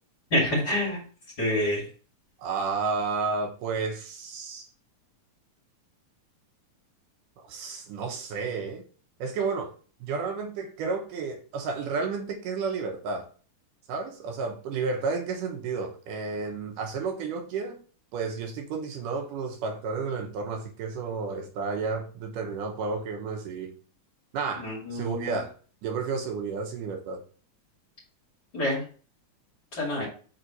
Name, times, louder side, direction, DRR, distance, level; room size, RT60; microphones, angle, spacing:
voice 1, 0.3-1.0 1.4-1.8 24.6-25.3 28.5-28.8 29.8-30.1, left 1 dB, 30° left, -4 dB, 2.6 m, -27 dB
voice 2, 2.4-4.7 7.5-8.8 9.2-9.7 10.0-13.3 13.9-17.8 18.1-23.7 24.3-25.5 25.8-27.2, right 4 dB, 80° right, 3 dB, 2.4 m, -31 dB
5.5 x 4.0 x 4.4 m, 0.40 s
omnidirectional pair, 3.9 m